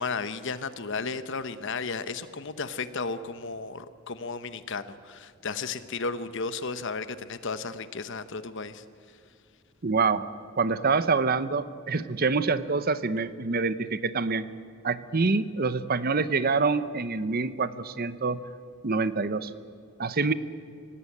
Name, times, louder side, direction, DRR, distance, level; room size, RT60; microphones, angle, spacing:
voice 1, 0.0-8.8, left 4 dB, 55° left, 12 dB, 1.0 m, -34 dB
voice 2, 9.8-10.3 10.6-14.5 14.8-18.4 18.8-19.5 20.0-20.3, right 4 dB, 40° right, 14 dB, 0.8 m, -26 dB
26.0 x 17.5 x 8.6 m, 2.3 s
head